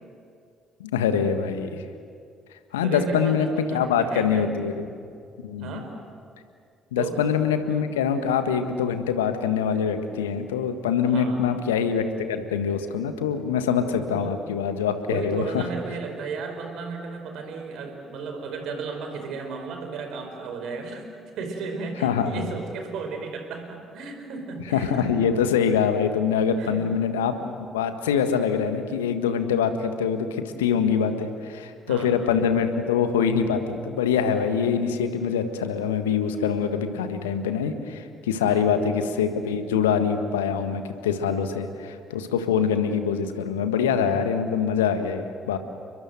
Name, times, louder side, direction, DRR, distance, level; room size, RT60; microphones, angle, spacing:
voice 1, 0.8-1.8 2.7-5.0 5.4-5.8 6.9-15.6 22.0-22.4 24.7-45.6, left 7 dB, 75° left, 8 dB, 1.6 m, -24 dB
voice 2, 2.8-4.5 5.6-5.9 7.0-7.2 11.1-11.4 13.8-14.4 15.0-21.1 21.4-25.1 26.6-26.9 31.9-32.1 38.4-38.7, right 4 dB, 60° right, 5 dB, 4.8 m, -34 dB
30.0 x 22.5 x 7.9 m, 2.3 s
figure-of-eight pair, 45°, 0 cm